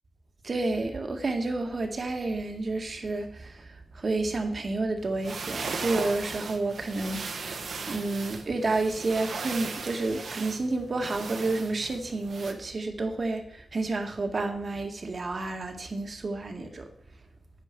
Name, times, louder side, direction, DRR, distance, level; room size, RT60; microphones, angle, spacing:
voice 1, 0.4-3.7 3.9-16.9, right 2 dB, 45° right, 5 dB, 2.0 m, -30 dB
sound 1, 5.0-12.5, right 4 dB, 65° right, 1.7 m, -37 dB
10.0 x 9.8 x 6.1 m, 0.66 s
wide cardioid pair, 110°, 0 cm